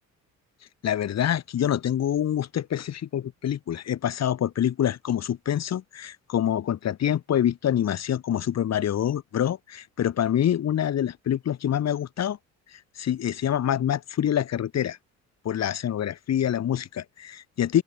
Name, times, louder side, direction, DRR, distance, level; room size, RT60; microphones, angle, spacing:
voice 1, 0.8-12.4 12.7-15.0 15.4-17.8, left 10 dB, 60° left, 1.9 m, -26 dB
open air
cardioid pair, 90°, 30 cm